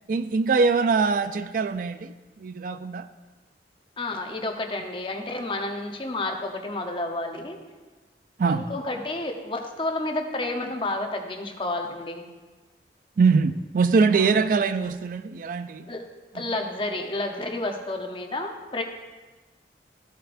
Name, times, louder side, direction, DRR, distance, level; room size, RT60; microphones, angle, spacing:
voice 1, 0.1-2.1 2.4-3.1 8.4-8.7 13.2-15.9 16.4-16.5, right 4 dB, 50° right, 0.3 m, -23 dB
voice 2, 4.0-7.6 8.5-12.2 14.1-14.3 15.9-16.0 16.3-18.8, left 2 dB, 30° left, 0.8 m, -30 dB
15.0 x 7.7 x 2.6 m
head